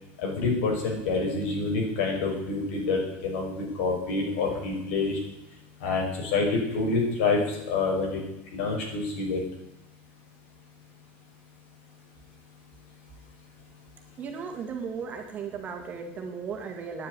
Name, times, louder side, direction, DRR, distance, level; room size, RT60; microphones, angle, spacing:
voice 1, 0.2-5.2 5.8-8.2 8.5-9.4, left 3 dB, 90° left, 0 dB, 5.5 m, -27 dB
voice 2, 14.2-17.1, right 6 dB, 25° right, 3 dB, 2.0 m, -36 dB
9.9 x 9.4 x 9.7 m, 0.87 s
cardioid pair, 175°, 7 cm